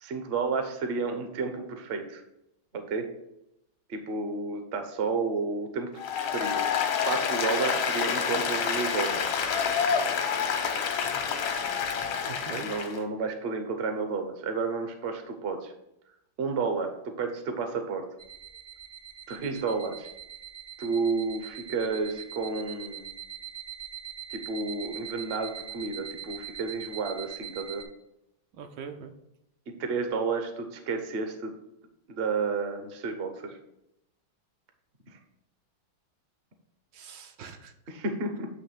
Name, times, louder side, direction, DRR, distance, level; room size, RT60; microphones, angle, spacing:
voice 1, 0.0-2.2 2.7-3.1 3.9-5.9 6.2-6.6 7.0-9.2 10.5-10.8 12.5-15.7 16.4-16.9 17.2-18.0 19.3-20.1 20.8-23.1 24.3-27.8 29.8-31.5 32.1-33.6 37.9-38.5, right 4 dB, 55° right, 6 dB, 0.6 m, -31 dB
Applause, 6.0-13.0, left 6 dB, 85° left, 1.7 m, -28 dB
voice 2, 12.3-12.9 28.5-29.1 36.9-37.7, right 6 dB, 75° right, 6 dB, 1.2 m, -42 dB
sound 1, 18.2-27.8, right 10 dB, ahead, 0.4 m, -42 dB
8.4 x 3.0 x 5.7 m, 0.85 s
omnidirectional pair, 2.2 m